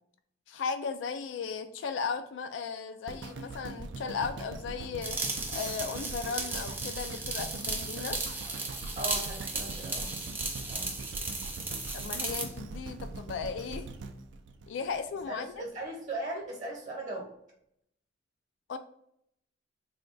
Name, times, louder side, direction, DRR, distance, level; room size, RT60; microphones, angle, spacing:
voice 1, 0.5-5.2 5.5-8.2 11.9-13.9 14.7-15.6 18.7-18.8, left 5 dB, 80° left, 8 dB, 0.3 m, -36 dB
sound 1, 3.1-15.3 15.8-15.9, right 3 dB, 80° right, 0.4 m, -42 dB
sound 2, 5.0-12.5, right 3 dB, 10° right, 0.5 m, -35 dB
voice 2, 8.9-10.1 10.7-10.9 15.3-17.3, right 1 dB, 40° right, -1 dB, 0.8 m, -38 dB
3.5 x 2.2 x 3.8 m, 0.72 s
head